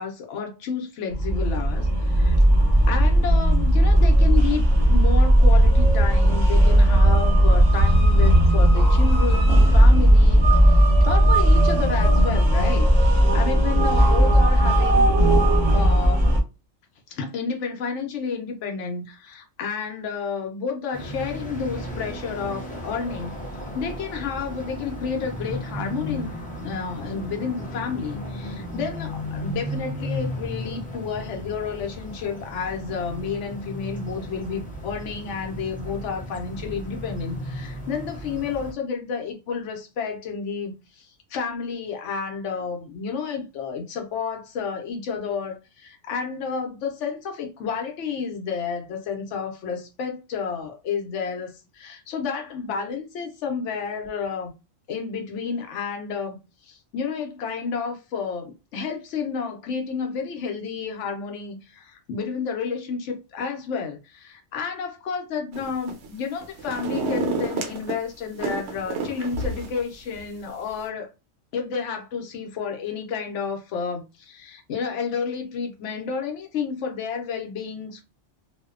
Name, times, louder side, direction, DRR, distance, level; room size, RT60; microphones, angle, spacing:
voice 1, 0.0-2.4 2.9-16.3 17.1-23.4 23.7-26.3 26.6-54.5 54.9-71.1 71.5-78.0, left 5 dB, 80° left, 0.9 m, -31 dB
sound 1, 1.1-16.4, right 1 dB, 25° right, 0.7 m, -16 dB
sound 2, 20.9-38.7, equal, 10° left, 0.5 m, -35 dB
sound 3, 65.5-66.1 66.4-68.0 68.4-69.8 70.2-70.3, right 3 dB, 80° right, 0.9 m, -29 dB
2.6 x 2.1 x 2.4 m
omnidirectional pair, 1.2 m